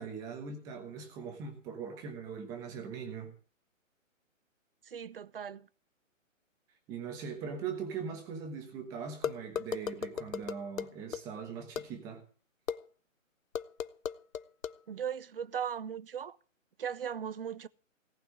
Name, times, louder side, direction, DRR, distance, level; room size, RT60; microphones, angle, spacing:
voice 1, 0.0-3.3 6.9-12.2, right 6 dB, 10° right, 1.2 m, -41 dB
voice 2, 4.9-5.7 14.9-16.4 16.8-17.7, right 8 dB, 45° right, 0.7 m, -38 dB
sound 1, 9.2-11.2 11.8-11.9 12.7-12.8 13.5-14.7, left 7 dB, 80° left, 1.0 m, -35 dB
18.0 x 6.0 x 8.5 m
hypercardioid pair, 165°, 40 cm